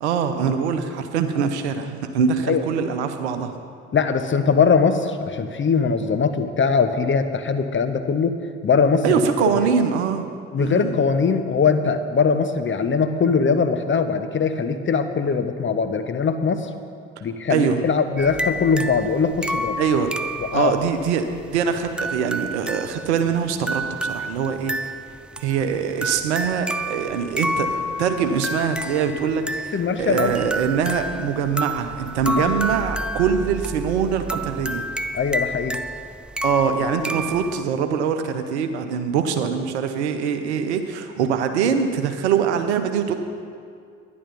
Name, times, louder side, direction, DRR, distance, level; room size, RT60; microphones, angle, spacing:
voice 1, 0.0-3.6 9.0-10.3 10.6-10.9 17.5-17.8 19.8-20.1 20.5-24.7 25.4-29.7 30.0-34.8 36.4-43.1, right 7 dB, 80° right, 8 dB, 0.8 m, -23 dB
voice 2, 3.9-8.4 8.6-9.2 10.5-16.7 17.2-19.8 20.4-20.7 29.7-30.3 32.4-32.5 35.1-35.8, left 5 dB, 35° left, 8 dB, 1.0 m, -21 dB
sound 1, 18.2-37.6, equal, 5° right, 0.6 m, -30 dB
11.0 x 10.5 x 5.4 m, 2.2 s
hypercardioid pair, 50°, 33 cm